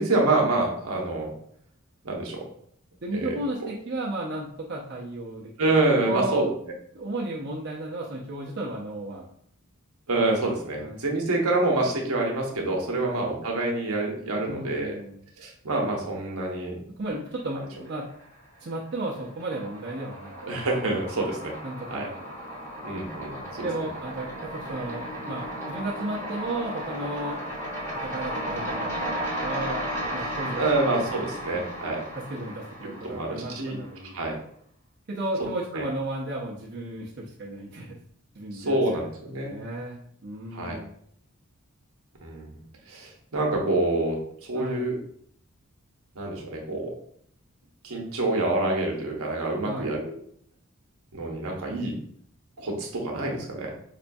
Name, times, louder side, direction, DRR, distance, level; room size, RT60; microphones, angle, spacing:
voice 1, 0.0-1.3 2.0-2.4 3.1-3.7 5.6-6.5 10.1-15.0 15.4-16.8 20.4-21.5 21.9-22.1 22.8-23.7 30.6-32.0 33.0-33.8 34.1-34.3 35.7-35.8 38.5-39.6 40.5-40.8 42.2-42.5 42.9-45.0 46.2-46.9 47.8-50.1 51.1-52.0 52.6-53.7, right 2 dB, 75° right, 0 dB, 0.8 m, -27 dB
voice 2, 3.0-5.7 6.0-6.5 6.9-9.3 10.8-11.0 13.0-13.2 14.5-15.2 17.0-18.1 18.6-20.4 21.6-22.3 23.6-27.4 27.9-29.8 30.1-31.7 32.2-34.2 35.1-38.0 38.3-39.1 39.4-40.9 44.5-44.8 49.6-49.9, right 1 dB, 50° right, -5 dB, 0.5 m, -34 dB
sound 1, 17.6-18.4 18.7-33.8, equal, 10° left, 1.0 m, -35 dB
5.0 x 2.2 x 2.6 m, 0.64 s
head